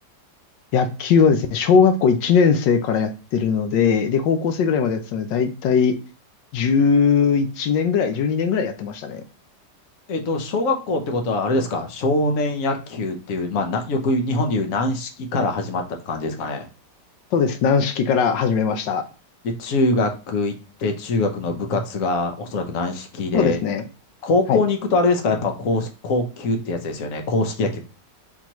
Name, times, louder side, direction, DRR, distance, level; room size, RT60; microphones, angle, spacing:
voice 1, 0.7-6.0 6.5-9.2 17.3-19.0 23.3-23.8 24.5-24.6, left 6 dB, 85° left, 8 dB, 1.3 m, -19 dB
voice 2, 10.1-16.7 19.6-20.5 20.8-23.6 24.2-27.8, left 2 dB, 55° left, 4 dB, 1.2 m, -23 dB
4.5 x 3.9 x 2.9 m, 0.34 s
omnidirectional pair, 1.9 m